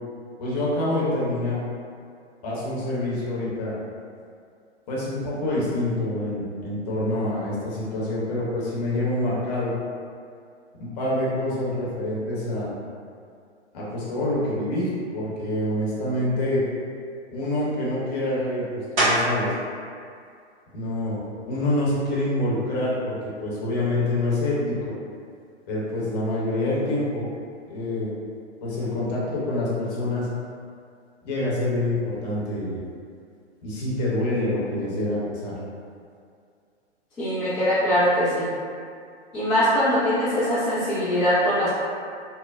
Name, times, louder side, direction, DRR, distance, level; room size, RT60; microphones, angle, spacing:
voice 1, 0.4-1.6 2.4-3.7 4.9-9.7 10.8-12.7 13.7-16.6 17.3-19.5 20.7-21.2 21.5-25.0 25.7-27.3 27.7-28.1 28.6-30.3 31.2-32.8 33.6-35.6, left 1 dB, 35° left, -7 dB, 0.8 m, -26 dB
sound 1, 19.0-19.6 20.1-24.5 25.1-30.2 30.5-36.2, right 1 dB, 55° right, 1.2 m, -34 dB
voice 2, 37.2-38.5 39.3-41.7, equal, 5° left, -19 dB, 0.3 m, -22 dB
3.1 x 2.1 x 2.4 m, 2.3 s
figure-of-eight pair, 110°, 35 cm